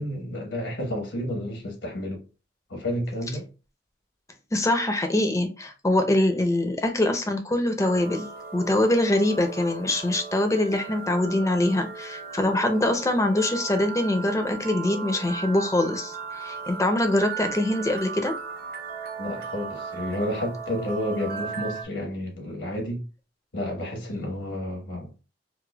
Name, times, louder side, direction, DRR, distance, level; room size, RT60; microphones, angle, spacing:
voice 1, 0.0-2.2 2.7-3.5 19.2-23.0 23.5-25.1, left 1 dB, 80° left, 1.2 m, -31 dB
voice 2, 4.5-18.3, left 1 dB, 15° left, 0.5 m, -24 dB
sound 1, 7.8-21.8, right 5 dB, 55° right, 0.7 m, -37 dB
4.8 x 2.2 x 2.2 m
head